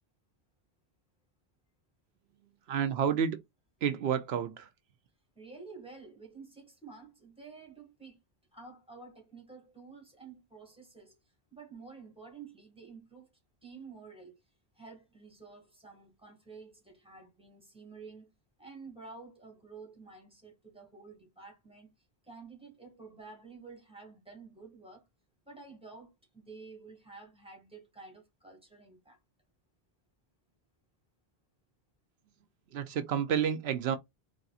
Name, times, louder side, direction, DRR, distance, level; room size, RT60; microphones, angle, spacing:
voice 1, 2.7-3.4 3.8-4.7 32.7-34.0, right 8 dB, 80° right, 0.8 m, -30 dB
voice 2, 5.4-8.2 8.5-11.2 11.5-13.3 13.6-14.4 14.7-18.3 18.6-21.9 22.2-25.1 25.5-29.2, right 4 dB, 5° right, 1.8 m, -50 dB
4.1 x 3.3 x 2.4 m
omnidirectional pair, 1.1 m